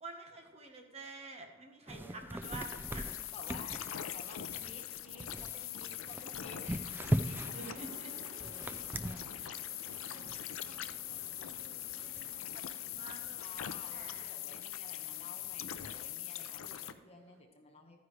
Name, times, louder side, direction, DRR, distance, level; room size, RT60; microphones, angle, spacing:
voice 1, 0.0-3.1 7.5-8.1 9.3-9.6 10.0-11.2 11.5-14.4, right 3 dB, 30° right, 2 dB, 1.3 m, -50 dB
voice 2, 1.9-2.4 3.3-6.9 7.2-9.3 10.1-10.7 13.4-18.0, left 2 dB, 30° left, 2 dB, 1.3 m, -54 dB
sound 1, 1.9-14.3 14.5-14.6 14.9-16.2, right 1 dB, 10° right, 0.4 m, -42 dB
sound 2, 2.4-16.9, left 12 dB, 85° left, 0.5 m, -42 dB
sound 3, 5.4-17.4, right 2 dB, 70° right, 1.0 m, -58 dB
13.5 x 9.6 x 3.3 m, 1.2 s
head